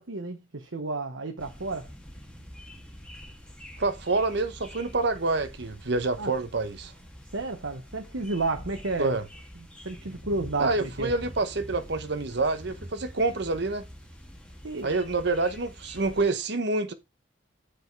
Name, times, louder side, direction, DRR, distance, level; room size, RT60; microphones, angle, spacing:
voice 1, 0.0-1.9 6.2-6.3 7.3-9.2 9.8-11.1 14.6-14.9, right 3 dB, 90° right, 1.2 m, -31 dB
sound 1, 1.4-16.3, equal, 5° left, 1.6 m, -45 dB
voice 2, 3.8-6.9 9.0-9.2 10.6-13.9 14.8-16.9, right 3 dB, 60° right, 1.1 m, -27 dB
8.3 x 5.1 x 4.7 m
head